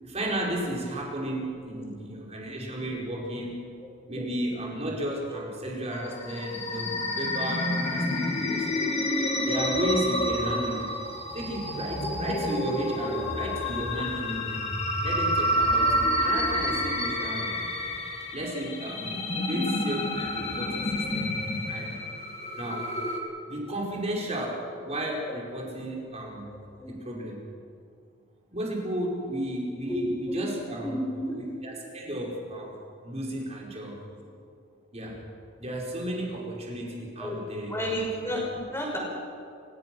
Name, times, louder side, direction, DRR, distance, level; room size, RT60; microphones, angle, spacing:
voice 1, 0.0-3.6 4.1-10.9 11.3-14.7 15.0-17.5 18.3-19.2 19.5-21.3 21.6-21.9 22.6-22.9 23.4-26.5 26.9-27.4 28.5-31.0 31.3-34.0 34.9-35.2 35.6-37.8 38.2-38.4, right 1 dB, 30° right, -2 dB, 5.0 m, -33 dB
sound 1, 5.9-23.2, left 1 dB, 35° left, 2.9 m, -29 dB
voice 2, 19.3-19.7 25.3-25.4 26.8-26.9 29.9-30.0 30.8-31.3 37.2-37.4 37.7-39.0, equal, 10° left, -2 dB, 6.3 m, -32 dB
29.5 x 16.5 x 6.3 m, 2.4 s
head